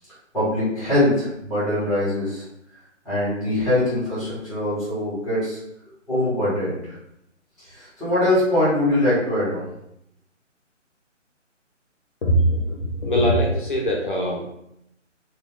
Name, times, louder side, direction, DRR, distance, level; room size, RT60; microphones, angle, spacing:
voice 1, 0.3-2.4 3.0-5.6 6.1-7.0 7.6-9.6, left 1 dB, ahead, -11 dB, 0.9 m, -22 dB
voice 2, 12.2-14.5, equal, 40° left, -2 dB, 0.7 m, -22 dB
4.1 x 2.3 x 3.6 m, 0.79 s
figure-of-eight pair, 155°, 38 cm